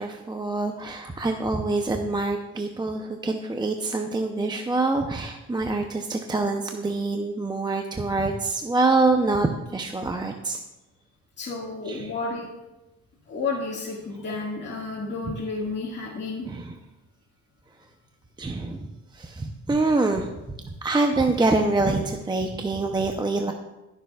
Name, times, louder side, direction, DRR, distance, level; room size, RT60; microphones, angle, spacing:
voice 1, 0.0-10.6 11.9-12.1 16.4-16.8 18.4-20.3 20.6-23.5, right 3 dB, 15° right, 4 dB, 0.7 m, -25 dB
voice 2, 11.4-12.5 13.3-16.5, left 3 dB, 35° left, -5 dB, 1.9 m, -31 dB
18.5 x 6.8 x 2.4 m, 1.0 s
cardioid pair, 90°, 30 cm